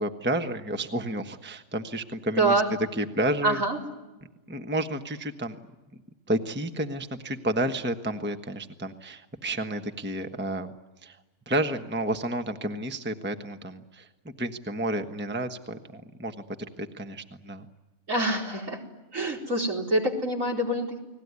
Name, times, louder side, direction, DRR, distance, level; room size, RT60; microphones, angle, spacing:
voice 1, 0.0-2.6 3.0-3.6 4.5-5.5 6.3-10.7 11.0-11.2 11.5-14.1 14.4-16.3 16.8-17.7, right 1 dB, 10° right, 6 dB, 1.2 m, -31 dB
voice 2, 2.4-2.7 3.4-3.8 18.1-18.8 19.1-21.0, right 2 dB, 65° right, 0 dB, 4.9 m, -25 dB
30.0 x 20.0 x 9.7 m, 1.1 s
omnidirectional pair, 1.5 m